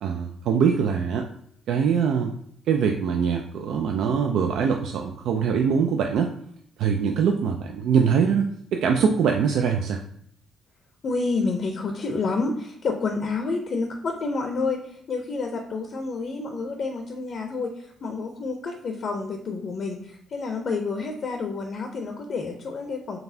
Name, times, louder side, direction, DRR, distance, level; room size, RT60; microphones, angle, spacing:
voice 1, 0.0-1.3 1.7-2.3 2.7-6.3 6.8-10.0, right 6 dB, 80° right, 3 dB, 0.3 m, -23 dB
voice 2, 11.0-23.2, left 3 dB, 55° left, 3 dB, 0.5 m, -29 dB
4.0 x 3.4 x 2.7 m, 0.68 s
cardioid pair, 90°, 0 cm